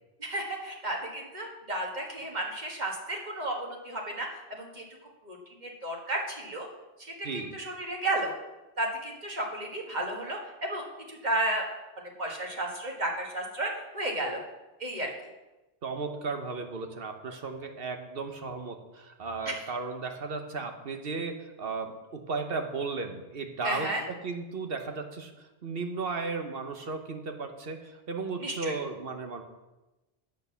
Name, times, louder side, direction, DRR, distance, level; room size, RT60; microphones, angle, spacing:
voice 1, 0.2-4.8 5.2-6.7 7.0-7.3 7.5-8.3 8.8-11.6 12.0-14.4 14.8-15.1 19.5-19.6 23.6-24.0 28.4-28.7, right 1 dB, 45° right, 0 dB, 1.8 m, -33 dB
voice 2, 15.8-29.4, right 4 dB, 65° right, 5 dB, 1.2 m, -35 dB
8.2 x 6.6 x 6.9 m, 1.1 s
omnidirectional pair, 1.1 m